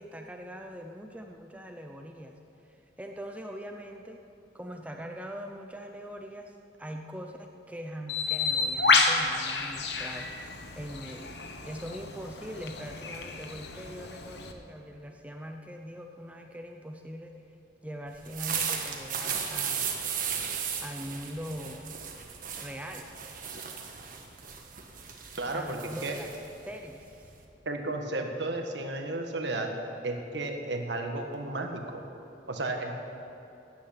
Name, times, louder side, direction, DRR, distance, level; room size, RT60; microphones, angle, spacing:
voice 1, 0.0-2.4 2.6-4.2 4.5-6.5 6.8-17.3 17.8-19.9 20.8-22.0 22.6-23.1 25.5-26.3 26.6-27.3, equal, 10° right, 3 dB, 0.6 m, -42 dB
Bird, 8.1-14.5, left 4 dB, 65° left, 1.1 m, -30 dB
sound 1, 18.1-27.4, right 7 dB, 50° right, 1.4 m, -36 dB
voice 2, 25.4-26.1 27.6-29.7 30.0-32.0 32.5-32.9, right 2 dB, 70° right, 3 dB, 1.5 m, -33 dB
17.0 x 9.7 x 5.9 m, 2.9 s
head